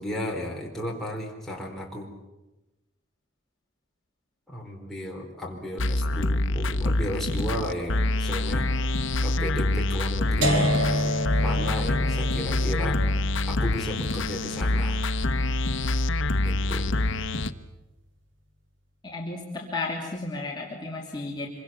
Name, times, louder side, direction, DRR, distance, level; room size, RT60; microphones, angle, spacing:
voice 1, 0.0-2.1 4.5-8.7 9.2-11.1 11.4-13.0 13.5-15.0 16.4-16.8, left 1 dB, ahead, -2 dB, 4.5 m, -34 dB
sound 1, 5.8-17.5, left 2 dB, 75° left, 1.0 m, -26 dB
sound 2, 10.4-16.3, equal, 70° right, 2.8 m, -29 dB
voice 2, 19.0-21.5, left 3 dB, 25° left, -3 dB, 2.9 m, -33 dB
26.0 x 24.0 x 7.2 m, 1.0 s
head